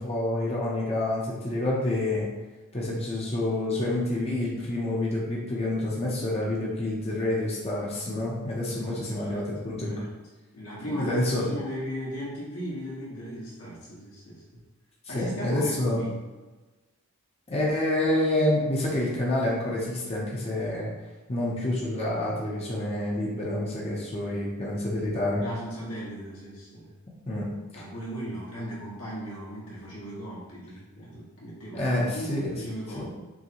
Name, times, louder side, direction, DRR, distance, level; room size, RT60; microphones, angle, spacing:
voice 1, 0.0-2.3 2.7-10.0 10.9-11.5 15.1-16.0 17.5-20.9 21.3-25.4 27.3-27.4 27.7-27.8 31.7-32.5 33.0-33.1, left 1 dB, 30° left, -5 dB, 0.7 m, -28 dB
voice 2, 8.7-9.4 9.9-10.1 10.5-14.6 15.1-16.1 25.4-26.9 27.7-33.1, equal, 80° left, -7 dB, 1.4 m, -37 dB
6.2 x 2.2 x 2.9 m, 1.2 s
head